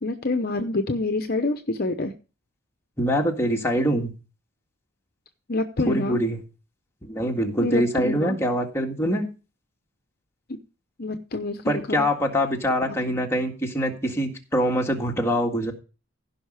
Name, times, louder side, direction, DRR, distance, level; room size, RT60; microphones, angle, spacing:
voice 1, 0.0-2.1 5.5-6.2 7.6-8.4 10.5-10.6 11.0-12.0 12.9-13.0, left 2 dB, 45° left, 7 dB, 0.8 m, -27 dB
voice 2, 3.0-4.1 5.8-6.4 7.1-9.3 11.7-15.7, equal, 10° left, 1 dB, 1.9 m, -24 dB
15.5 x 5.6 x 5.0 m, 0.33 s
head